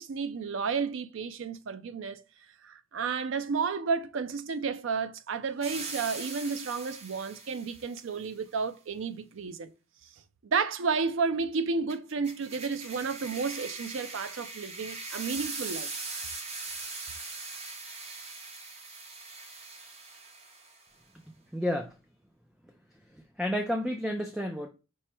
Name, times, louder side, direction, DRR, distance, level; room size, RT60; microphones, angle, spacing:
voice 1, 0.0-2.2 2.6-9.7 10.4-15.9, right 5 dB, 70° right, 0.4 m, -32 dB
sound 1, 5.6-8.0 11.9-20.8, right 3 dB, 30° right, 0.8 m, -41 dB
voice 2, 21.5-22.0 23.1-24.7, left 1 dB, 5° right, 0.3 m, -31 dB
4.7 x 2.0 x 4.3 m
head